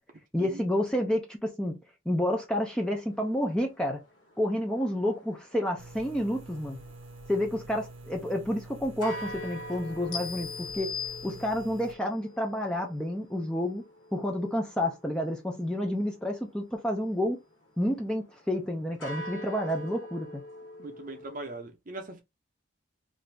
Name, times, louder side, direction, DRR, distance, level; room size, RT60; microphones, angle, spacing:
voice 1, 0.3-1.8 2.1-4.0 4.4-6.8 7.3-11.0 11.2-13.8 14.1-17.4 17.8-20.4, left 1 dB, 5° left, 0.4 m, -29 dB
sound 1, 2.8-21.4, equal, 60° left, 1.2 m, -47 dB
sound 2, 5.8-12.0, right 2 dB, 80° right, 0.6 m, -47 dB
sound 3, 10.1-11.9, left 7 dB, 80° left, 1.1 m, -38 dB
voice 2, 20.8-22.2, right 2 dB, 40° right, 0.6 m, -40 dB
2.7 x 2.5 x 3.2 m
head